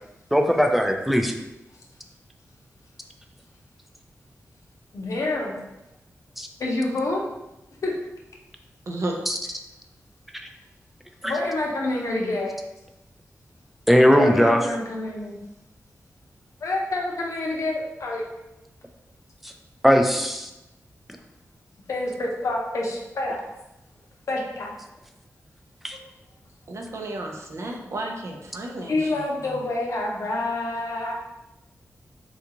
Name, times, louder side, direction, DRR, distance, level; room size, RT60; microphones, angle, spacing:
voice 1, 0.3-1.3 6.4-6.5 9.3-9.4 11.2-11.3 13.9-14.7 19.4-19.5 19.8-20.5 25.8-26.0, equal, 5° right, 4 dB, 0.3 m, -19 dB
voice 2, 4.9-5.6 6.6-7.2 7.8-7.9 11.2-12.6 14.1-15.4 16.6-18.2 21.9-23.4 24.3-24.7 28.9-31.1, left 2 dB, 80° left, -1 dB, 0.7 m, -27 dB
voice 3, 26.7-28.9, right 2 dB, 60° right, 1 dB, 0.5 m, -32 dB
3.7 x 2.3 x 2.9 m, 0.93 s
wide cardioid pair, 95°, 5 cm